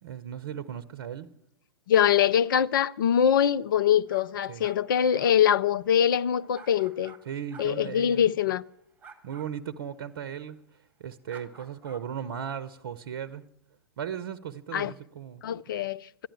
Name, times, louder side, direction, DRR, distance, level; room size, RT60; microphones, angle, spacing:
voice 1, 0.0-1.3 4.5-4.7 7.3-8.3 9.2-10.6 11.0-13.5 14.0-15.4, right 8 dB, 60° right, 0.7 m, -37 dB
voice 2, 1.9-7.1 7.6-8.6 14.7-14.9 15.4-16.3, left 9 dB, 55° left, 0.5 m, -23 dB
sound 1, 4.1-7.2 7.5-7.7 9.0-9.5 11.3-12.0, right 5 dB, 10° right, 1.9 m, -51 dB
13.0 x 10.0 x 8.4 m
figure-of-eight pair, 110°, 13 cm